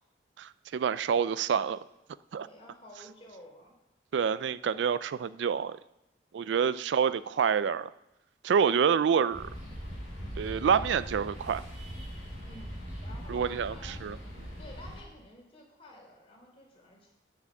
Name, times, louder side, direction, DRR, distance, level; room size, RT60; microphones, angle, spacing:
voice 1, 0.4-1.8 2.3-2.5 4.1-5.8 6.3-7.9 8.4-9.5 10.4-11.6 13.3-14.2, right 7 dB, 75° right, 16 dB, 0.3 m, -27 dB
voice 2, 2.4-3.7 6.5-6.7 8.6-9.2 12.4-14.0 14.6-17.1, left 1 dB, 35° left, -2 dB, 3.3 m, -51 dB
sound 1, 9.3-15.0, equal, 40° right, 4.1 m, -41 dB
9.2 x 7.0 x 7.0 m, 0.89 s
head